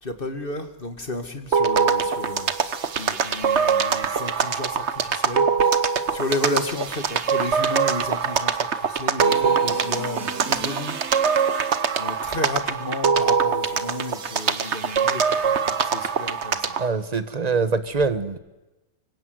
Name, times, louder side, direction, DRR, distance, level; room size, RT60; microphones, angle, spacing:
voice 1, 0.0-11.0 11.3-16.8, left 2 dB, 30° left, 8 dB, 2.2 m, -33 dB
sound 1, 1.5-16.9, right 6 dB, 45° right, 1.2 m, -23 dB
voice 2, 16.8-18.4, right 4 dB, 30° right, 13 dB, 0.9 m, -24 dB
25.0 x 25.0 x 7.9 m, 1.1 s
omnidirectional pair, 2.0 m